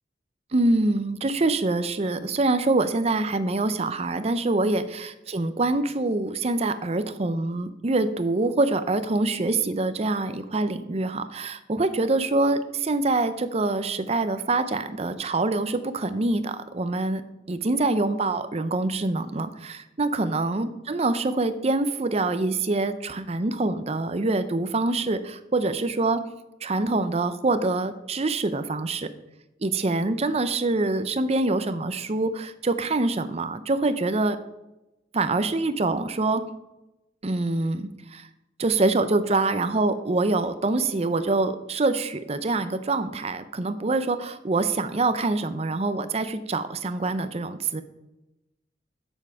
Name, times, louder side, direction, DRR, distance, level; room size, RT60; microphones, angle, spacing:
voice 1, 0.5-17.2 17.5-26.2 26.6-29.1 29.6-34.4 35.1-36.4 37.2-38.3 38.6-47.8, right 2 dB, 35° right, 11 dB, 0.6 m, -25 dB
8.3 x 7.3 x 5.6 m, 0.94 s
head